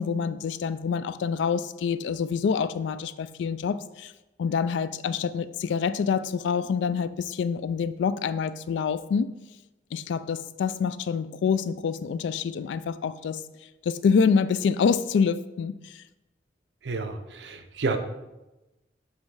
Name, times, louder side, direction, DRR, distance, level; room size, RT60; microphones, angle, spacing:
voice 1, 0.0-4.1 4.4-9.3 9.9-13.4 13.9-16.0, left 6 dB, 80° left, 15 dB, 0.3 m, -26 dB
voice 2, 16.8-18.0, right 3 dB, 75° right, 7 dB, 0.6 m, -30 dB
7.4 x 3.2 x 4.6 m, 1.0 s
head